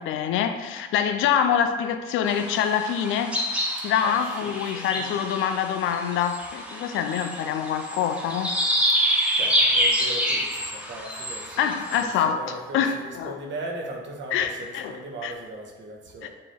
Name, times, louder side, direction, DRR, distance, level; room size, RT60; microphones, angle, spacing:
voice 1, 0.0-3.3 3.8-8.5 11.6-13.4 14.3-14.9 15.2-15.3 16.2-16.3, left 8 dB, 90° left, 8 dB, 0.6 m, -25 dB
sound 1, 2.2-12.0, equal, 5° right, 1.3 m, -27 dB
voice 2, 4.0-5.1 9.4-16.3, right 1 dB, 70° right, 1 dB, 1.3 m, -38 dB
7.6 x 3.1 x 4.5 m, 1.3 s
cardioid pair, 90°, 20 cm